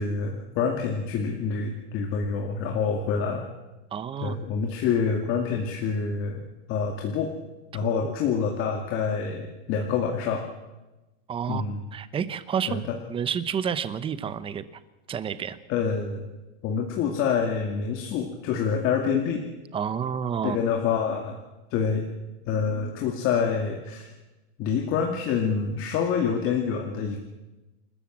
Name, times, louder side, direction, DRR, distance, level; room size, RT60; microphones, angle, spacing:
voice 1, 0.0-3.5 4.2-6.4 6.7-7.3 7.7-10.4 11.5-11.8 12.7-13.0 15.7-16.2 16.6-19.5 20.4-21.4 21.7-22.0 22.5-24.1 24.6-27.2, left 6 dB, 35° left, 2 dB, 2.3 m, -27 dB
voice 2, 3.9-4.4 8.0-8.1 11.3-11.6 11.9-12.8 13.1-14.6 15.1-15.6 19.7-20.6, right 7 dB, 15° right, 14 dB, 0.8 m, -29 dB
28.0 x 13.5 x 7.4 m, 1.1 s
supercardioid pair, 155°, 34 cm